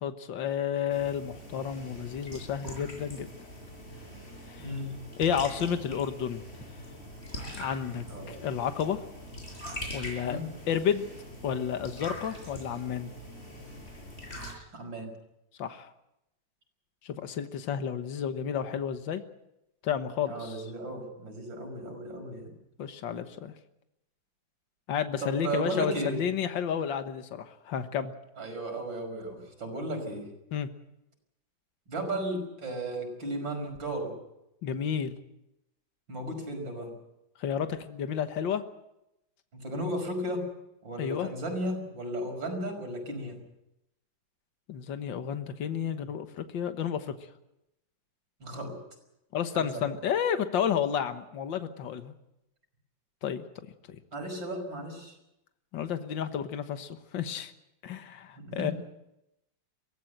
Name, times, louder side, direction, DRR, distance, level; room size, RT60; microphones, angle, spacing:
voice 1, 0.0-3.3 4.5-4.7 5.2-6.4 7.6-9.0 9.9-10.4 10.7-11.1 11.4-13.1 15.6-15.9 17.0-19.2 19.8-20.6 22.8-23.5 24.9-28.1 30.5-30.7 34.6-35.2 37.4-38.6 41.0-41.3 44.7-47.2 49.3-52.1 53.2-53.4 53.9-54.0 55.7-57.5 57.8-58.7, left 8 dB, 75° left, 8 dB, 2.0 m, -31 dB
sound 1, 0.9-14.5, equal, 30° left, 7.3 m, -43 dB
voice 2, 8.0-8.4 10.2-10.4 14.7-15.1 20.3-22.5 25.2-26.2 28.4-30.3 31.9-34.1 36.1-36.9 39.5-40.4 40.8-43.3 48.4-48.8 49.5-49.8 54.1-55.1 58.4-58.7, right 1 dB, 80° right, 4 dB, 6.4 m, -35 dB
23.5 x 17.5 x 7.9 m, 0.88 s
omnidirectional pair, 2.0 m